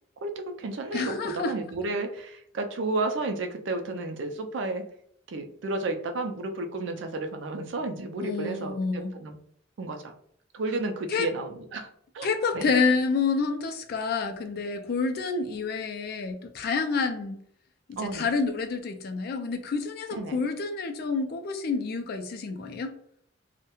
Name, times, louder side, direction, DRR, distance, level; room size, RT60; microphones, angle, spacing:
voice 1, 0.2-4.8 5.3-9.4 9.8-10.1 10.5-11.9 12.1-12.3 12.5-12.6 18.0-18.3 20.1-20.4, right 2 dB, 65° right, 0.4 m, -32 dB
voice 2, 0.9-1.5 8.2-9.1 11.1-11.3 12.2-17.4 17.9-22.9, left 4 dB, 50° left, 0.3 m, -28 dB
2.3 x 2.1 x 2.9 m
head